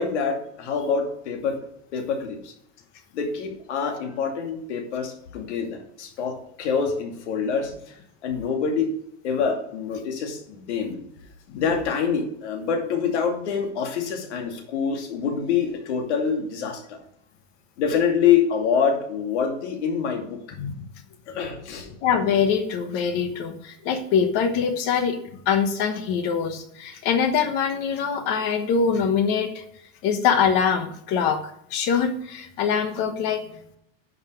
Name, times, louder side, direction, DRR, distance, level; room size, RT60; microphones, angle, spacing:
voice 1, 0.0-1.6 1.9-2.4 3.1-7.7 8.2-8.9 9.2-11.0 11.6-17.0 17.8-20.4 21.3-21.9, left 6 dB, 60° left, 3 dB, 2.6 m, -25 dB
voice 2, 22.0-29.6 30.0-33.8, left 6 dB, 25° left, 8 dB, 1.0 m, -24 dB
10.5 x 5.9 x 5.0 m, 0.71 s
supercardioid pair, 180°, 38 cm